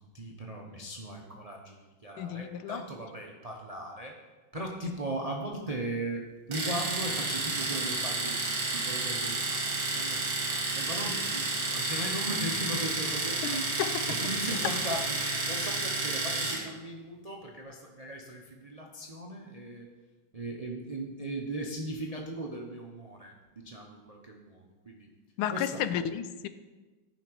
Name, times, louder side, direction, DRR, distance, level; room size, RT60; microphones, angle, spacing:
voice 1, 0.1-4.2 4.5-10.2 10.5-13.7 14.1-19.9 20.3-25.1 25.5-25.8, right 1 dB, 80° right, 0 dB, 0.3 m, -38 dB
voice 2, 2.2-2.8 13.4-14.1 25.4-26.5, left 10 dB, 90° left, 12 dB, 1.5 m, -32 dB
Domestic sounds home sounds, 6.5-16.7, right 3 dB, 50° right, 2.1 m, -31 dB
13.5 x 5.8 x 4.6 m, 1.3 s
omnidirectional pair, 2.2 m